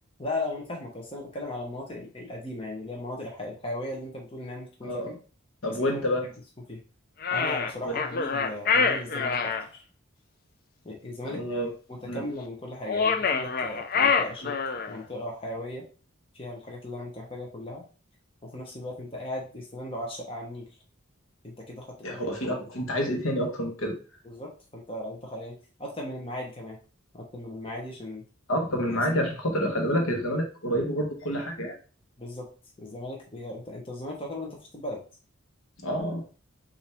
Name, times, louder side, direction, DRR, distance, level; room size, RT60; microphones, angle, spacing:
voice 1, 0.2-5.2 5.9-6.3 6.7-6.8 7.3-9.8 10.8-11.4 11.9-14.5 14.9-15.8 16.3-17.8 18.4-20.7 21.4-22.2 24.2-26.8 27.1-28.2 28.9-29.0 32.2-32.5 32.8-35.0, left 1 dB, 25° left, -1 dB, 0.9 m, -37 dB
voice 2, 4.8-5.1 5.6-6.3 7.8-8.0 11.2-11.7 12.1-12.2 22.0-23.9 28.5-31.8 35.8-36.2, equal, 80° left, 2 dB, 1.2 m, -28 dB
sound 1, 7.2-9.6 12.8-15.0, left 5 dB, 45° left, 0.4 m, -26 dB
5.4 x 2.7 x 3.4 m, 0.37 s
head